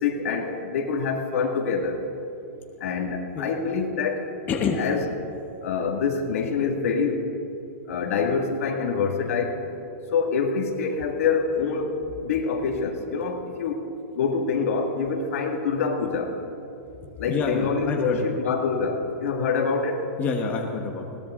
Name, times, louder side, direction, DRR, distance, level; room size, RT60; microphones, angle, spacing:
voice 1, 0.0-2.0 2.8-4.3 4.7-5.1 5.6-7.3 7.9-9.6 10.1-12.0 12.2-13.8 14.1-16.4 17.2-20.0, left 5 dB, 65° left, 3 dB, 2.1 m, -25 dB
voice 2, 4.5-4.8 17.0-18.4 20.2-21.2, left 5 dB, 20° left, 1 dB, 1.2 m, -28 dB
21.0 x 18.0 x 3.8 m, 2.9 s
supercardioid pair, 160°, 8 cm